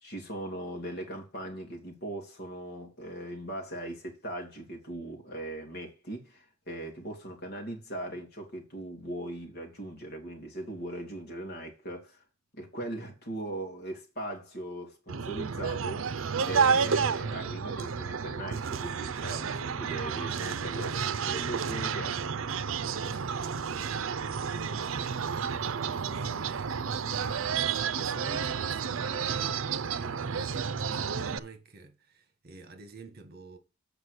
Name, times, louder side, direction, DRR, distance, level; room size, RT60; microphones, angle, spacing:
voice 1, 0.0-12.2 12.5-22.2, right 1 dB, 55° left, 2.7 m, -39 dB
sound 1, 15.1-31.4, right 6 dB, 85° right, 0.6 m, -31 dB
voice 2, 22.8-25.2 25.6-33.6, right 2 dB, 50° right, 1.5 m, -48 dB
8.1 x 4.9 x 6.6 m
head